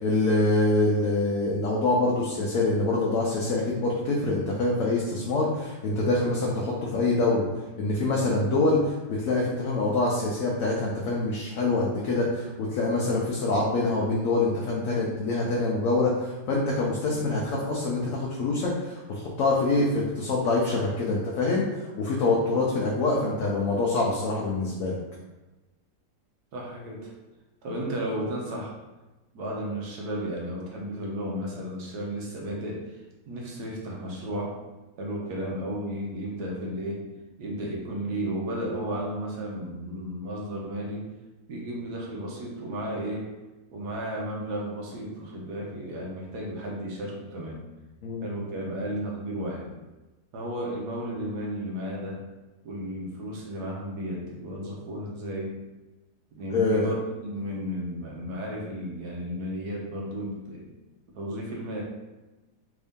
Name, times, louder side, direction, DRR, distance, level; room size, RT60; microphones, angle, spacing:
voice 1, 0.0-7.4 7.8-21.7 22.0-25.0 48.0-48.2 56.5-56.9, left 2 dB, 65° left, -4 dB, 0.9 m, -25 dB
voice 2, 26.5-27.1 27.6-28.7 29.3-34.6 35.0-37.0 37.4-41.1 41.5-43.3 43.7-47.6 48.2-49.7 50.3-52.2 52.6-55.6 56.3-60.7 61.1-61.8, equal, 70° right, -2 dB, 1.4 m, -33 dB
3.6 x 2.6 x 3.5 m, 1.1 s
omnidirectional pair, 1.8 m